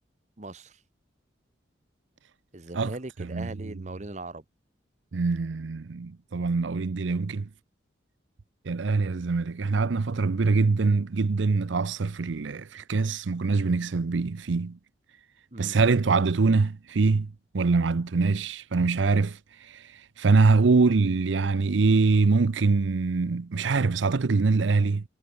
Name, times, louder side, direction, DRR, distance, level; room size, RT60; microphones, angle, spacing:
voice 1, 0.4-0.8 2.5-4.4 15.5-15.8, right 2 dB, 35° right, 1.1 m, -39 dB
voice 2, 3.2-3.7 5.1-7.5 8.7-14.8 15.6-25.0, right 4 dB, 80° right, 0.6 m, -24 dB
head